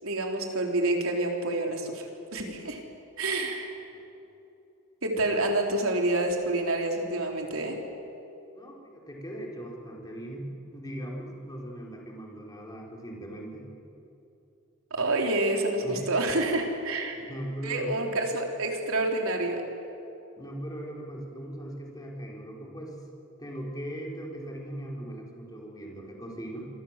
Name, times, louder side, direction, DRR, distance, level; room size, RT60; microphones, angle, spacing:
voice 1, 0.0-2.8 3.2-3.8 5.0-7.8 14.9-17.2 17.6-19.6, right 2 dB, 80° right, 2 dB, 3.8 m, -28 dB
voice 2, 8.5-13.7 15.8-16.1 17.2-18.0 20.4-23.0 23.4-26.7, right 1 dB, 20° left, -2 dB, 4.4 m, -39 dB
26.5 x 24.5 x 7.5 m, 2.9 s
head